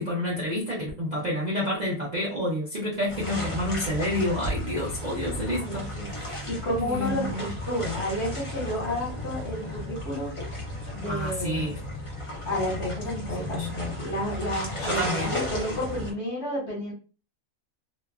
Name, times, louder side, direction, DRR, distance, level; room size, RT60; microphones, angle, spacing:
voice 1, 0.0-6.5 6.8-7.5 11.1-11.8 13.4-13.7 14.8-15.3, equal, 45° right, -6 dB, 0.6 m, -29 dB
sound 1, 3.1-16.1, left 1 dB, 35° left, 0.5 m, -34 dB
voice 2, 5.5-10.3 11.0-11.7 12.4-16.9, left 1 dB, 55° left, -3 dB, 1.3 m, -31 dB
2.9 x 2.2 x 2.3 m, 0.35 s
omnidirectional pair, 1.5 m